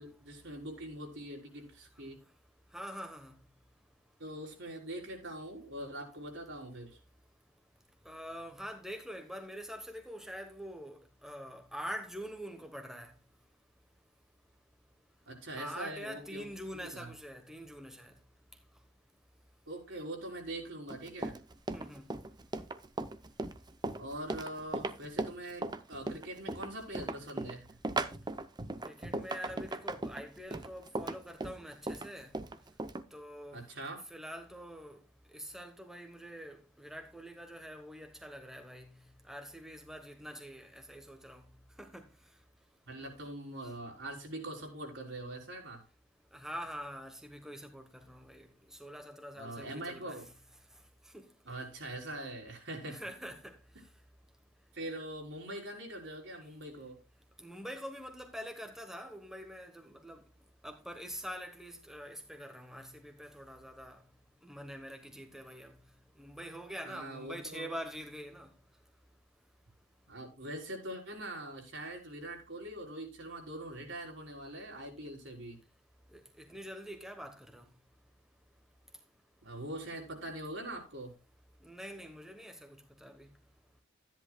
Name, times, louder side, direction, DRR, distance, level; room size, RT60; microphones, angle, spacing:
voice 1, 0.0-2.2 4.2-7.0 15.3-16.5 16.7-17.1 19.7-21.4 24.0-27.7 33.5-34.1 42.9-45.8 49.3-50.3 51.5-53.0 54.7-57.0 66.8-67.7 70.1-75.6 79.4-81.1, right 1 dB, 65° right, 4.1 m, -43 dB
voice 2, 2.7-3.4 8.0-13.1 15.5-18.1 21.7-22.1 28.9-32.3 33.1-33.6 34.1-35.0 35.3-38.9 39.3-41.4 41.8-42.1 46.3-50.2 51.1-51.3 52.9-53.6 57.4-60.2 60.6-64.0 64.4-65.7 66.2-68.5 76.1-77.7 81.6-83.3, equal, ahead, 1.1 m, -45 dB
Run, 20.9-33.0, right 2 dB, 20° right, 0.6 m, -37 dB
13.5 x 10.5 x 2.3 m
head